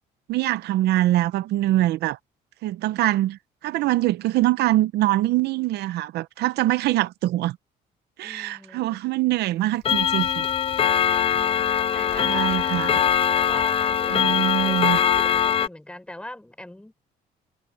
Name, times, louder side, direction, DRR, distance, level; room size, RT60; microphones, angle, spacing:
voice 1, 0.3-2.2 2.6-7.6 8.2-10.4 12.2-13.0 14.1-15.0, right 15 dB, 75° right, 0.8 m, -23 dB
voice 2, 8.2-9.0 11.1-12.8 13.4-16.9, left 1 dB, 5° left, 5.2 m, -42 dB
Clock, 9.9-15.7, left 9 dB, 35° left, 0.4 m, -22 dB
cardioid pair, 110°, 17 cm